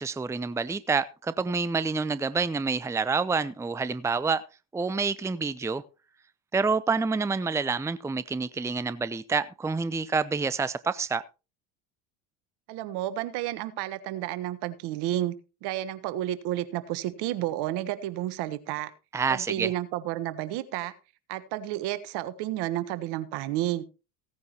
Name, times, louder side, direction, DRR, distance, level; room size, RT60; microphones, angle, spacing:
voice 1, 0.0-4.4 4.7-5.8 6.5-11.2 19.1-19.7, right 4 dB, 5° right, 0.6 m, -28 dB
voice 2, 12.7-15.3 15.6-18.9 19.3-20.9 21.3-23.8, right 14 dB, 65° right, 1.4 m, -31 dB
16.5 x 9.5 x 2.9 m
hypercardioid pair, 75°, 43 cm